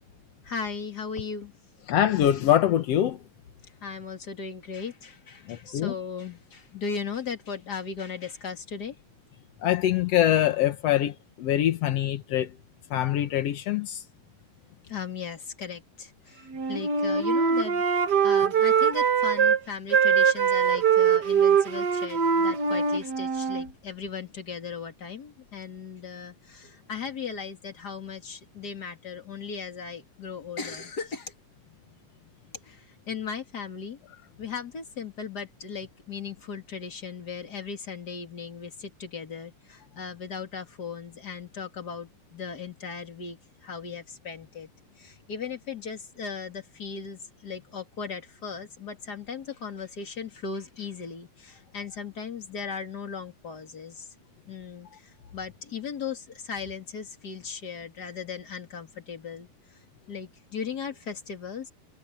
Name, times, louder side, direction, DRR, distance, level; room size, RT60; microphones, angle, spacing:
voice 1, 0.4-1.5 3.8-9.0 14.9-31.3 32.6-34.0 34.4-44.7 45.0-54.1 54.5-59.8 60.1-61.7, left 6 dB, 30° left, 2.7 m, -37 dB
voice 2, 1.9-3.2 5.5-5.9 9.6-12.5 12.9-14.0, left 11 dB, 75° left, 1.4 m, -24 dB
Wind instrument woodwind instrument, 16.5-19.6 19.9-23.7, right 6 dB, 85° right, 0.9 m, -22 dB
omnidirectional pair, 4.3 m